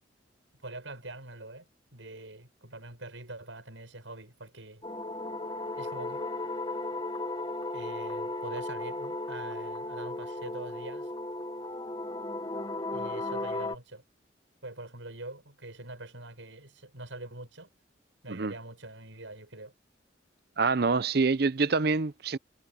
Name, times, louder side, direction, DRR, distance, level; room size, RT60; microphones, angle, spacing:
voice 1, 0.6-4.9 5.8-6.3 7.7-11.1 12.9-14.0 14.6-17.7 18.2-19.7, right 2 dB, 85° right, 6.9 m, -44 dB
sound 1, 4.8-13.8, left 2 dB, 25° left, 1.0 m, -35 dB
voice 2, 20.6-22.4, right 4 dB, 55° right, 0.6 m, -26 dB
head